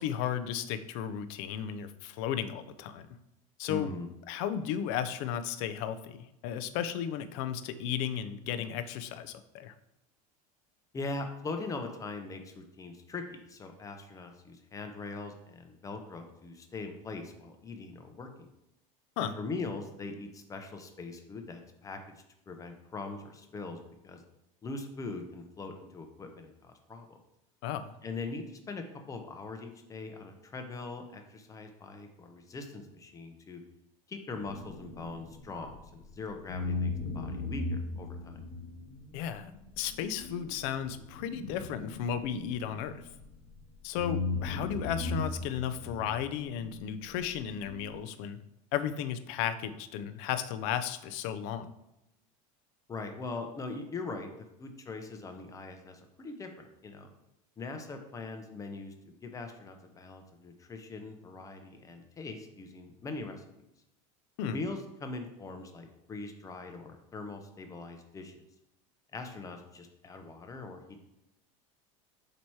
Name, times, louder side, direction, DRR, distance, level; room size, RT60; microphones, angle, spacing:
voice 1, 0.0-3.2 3.6-4.0 4.3-9.7 19.2-19.3 27.6-27.9 39.1-39.5 39.8-43.0 43.8-48.4 48.7-51.7 64.4-64.6, left 9 dB, 60° left, 11 dB, 0.6 m, -34 dB
voice 2, 3.7-4.1 10.9-18.3 19.2-22.0 22.5-23.8 24.0-24.2 24.6-27.2 28.0-33.6 34.1-38.4 52.9-54.3 54.6-57.1 57.6-63.4 64.5-68.4 69.1-71.0, left 3 dB, 20° left, 5 dB, 0.8 m, -41 dB
sound 1, 34.3-36.1 36.5-43.6 44.0-48.0, left 3 dB, 80° left, 1.2 m, -38 dB
7.4 x 3.0 x 4.7 m, 0.88 s
supercardioid pair, 140°, 18 cm